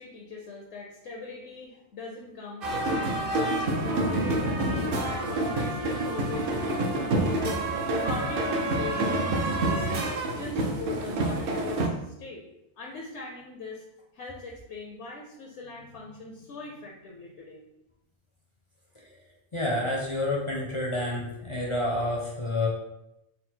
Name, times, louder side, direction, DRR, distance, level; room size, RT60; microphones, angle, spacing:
voice 1, 0.0-2.7 3.6-10.0 10.4-12.4 12.8-13.8 14.1-17.6, left 3 dB, 70° left, -1 dB, 0.9 m, -41 dB
sound 1, 2.6-11.9, right 1 dB, 60° right, 0.7 m, -27 dB
voice 2, 19.5-22.7, left 1 dB, 35° left, -3 dB, 0.5 m, -29 dB
3.9 x 2.0 x 4.4 m, 0.87 s
omnidirectional pair, 1.2 m